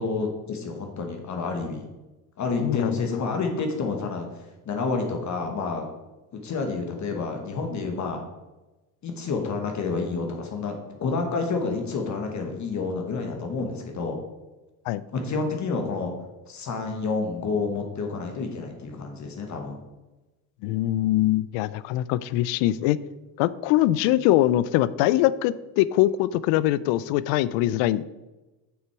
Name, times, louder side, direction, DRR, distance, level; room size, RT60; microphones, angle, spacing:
voice 1, 0.0-1.8 2.4-4.3 4.6-5.9 6.3-8.2 9.0-14.2 15.1-16.1 16.5-19.8, left 4 dB, 40° left, 3 dB, 1.2 m, -29 dB
voice 2, 2.6-3.0 14.9-15.0 20.6-23.0 23.4-28.0, left 14 dB, 75° left, 18 dB, 0.5 m, -22 dB
6.5 x 5.9 x 4.7 m, 1.1 s
cardioid pair, 120°, 45 cm